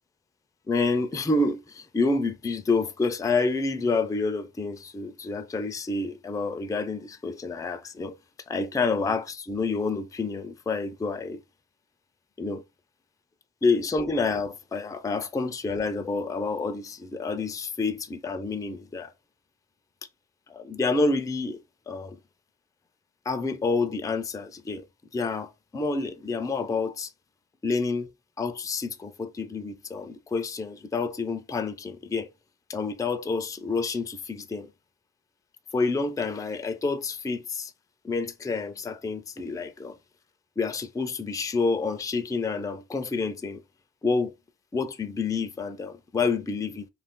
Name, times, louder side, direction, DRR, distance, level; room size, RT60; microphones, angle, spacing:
voice 1, 0.7-8.2 8.5-11.4 12.4-12.6 13.6-19.1 20.5-21.6 21.9-22.2 23.3-24.8 25.1-27.1 27.6-28.1 28.4-32.3 32.7-34.7 35.7-37.7 38.0-40.0 40.6-43.6 44.0-44.3 44.7-46.9, left 3 dB, 10° left, 0.3 m, -28 dB
2.5 x 2.3 x 3.5 m
cardioid pair, 55°, 41 cm